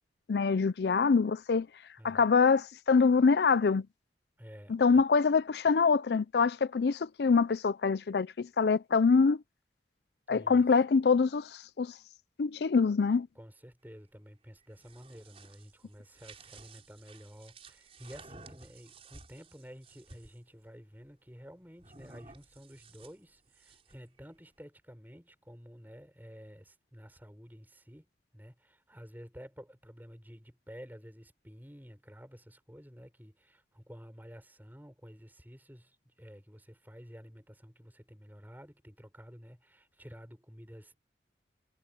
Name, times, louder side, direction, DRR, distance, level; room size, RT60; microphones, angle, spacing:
voice 1, 0.3-1.7 2.0-3.8 4.7-9.4 10.3-11.9 12.4-13.3, left 5 dB, 65° left, 0.4 m, -25 dB
voice 2, 4.4-5.0 10.3-10.6 13.3-28.1 28.3-41.0, equal, 10° right, 6.5 m, -51 dB
sound 1, 14.6-20.4 21.8-24.1, right 3 dB, 35° right, 5.9 m, -54 dB
head